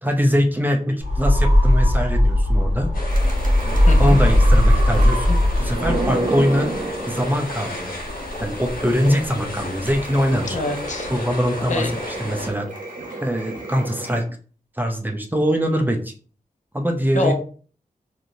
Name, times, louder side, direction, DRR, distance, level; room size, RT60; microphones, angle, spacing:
voice 1, 0.0-2.9 4.0-6.7 7.1-7.9 8.4-10.6 11.1-12.7 13.2-14.2 14.8-16.1 16.7-17.3, equal, 15° right, 3 dB, 0.5 m, -22 dB
sound 1, 1.0-6.3, left 1 dB, 45° right, 1.1 m, -17 dB
sound 2, 2.9-12.5, left 1 dB, 80° left, 1.1 m, -32 dB
sound 3, 3.1-7.8 8.3-8.4 8.8-8.9 9.1-14.2, right 2 dB, 65° right, 0.8 m, -32 dB
voice 2, 3.9-4.2 10.5-11.1 11.7-11.9 17.1-17.3, left 2 dB, 60° left, 4 dB, 0.6 m, -24 dB
3.0 x 2.5 x 2.7 m, 0.40 s
wide cardioid pair, 95°, 14 cm